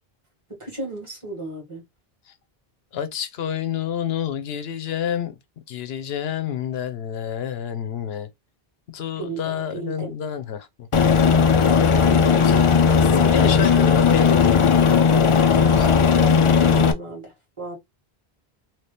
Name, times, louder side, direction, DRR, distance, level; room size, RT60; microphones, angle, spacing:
voice 1, 0.5-1.8 9.2-10.1 11.9-13.2 13.4-13.7 15.5-15.9 16.1-17.8, right 3 dB, 30° right, 1.9 m, -35 dB
voice 2, 2.9-5.4 5.7-8.3 8.9-10.9 11.3-11.5 12.2-12.6 13.2-14.6, left 9 dB, 80° left, 0.9 m, -29 dB
Aircraft, 10.9-16.9, left 6 dB, 50° left, 0.4 m, -16 dB
3.1 x 2.8 x 3.2 m
omnidirectional pair, 1.0 m